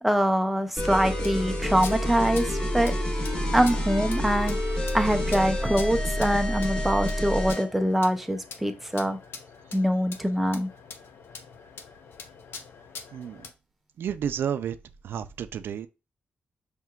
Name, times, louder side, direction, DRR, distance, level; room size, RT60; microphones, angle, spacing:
voice 1, 0.0-2.9 3.5-4.6 4.9-9.2 9.7-10.7, equal, 5° right, 0.5 m, -24 dB
sound 1, 0.8-7.7, equal, 25° left, 1.2 m, -28 dB
sound 2, 1.1-13.5, left 5 dB, 90° left, 0.6 m, -45 dB
voice 2, 13.1-13.5 14.0-14.8 15.0-15.9, right 8 dB, 85° right, 0.3 m, -31 dB
5.6 x 2.9 x 2.3 m
wide cardioid pair, 150°, 4 cm